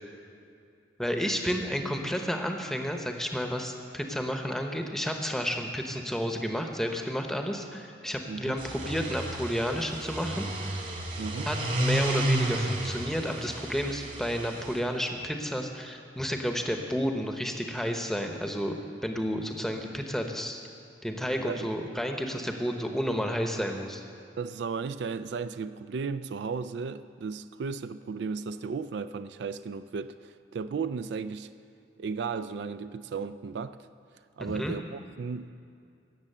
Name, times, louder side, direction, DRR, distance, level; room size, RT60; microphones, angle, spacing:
voice 1, 1.0-10.5 11.5-20.6 21.0-24.0 34.4-34.8, equal, ahead, 4 dB, 0.8 m, -31 dB
sound 1, 8.5-14.8, right 1 dB, 45° right, 2.2 m, -32 dB
voice 2, 11.2-11.5 21.4-21.7 24.4-31.5 32.0-33.8 34.4-35.5, right 5 dB, 70° right, 12 dB, 0.4 m, -35 dB
17.0 x 7.3 x 6.7 m, 2.5 s
head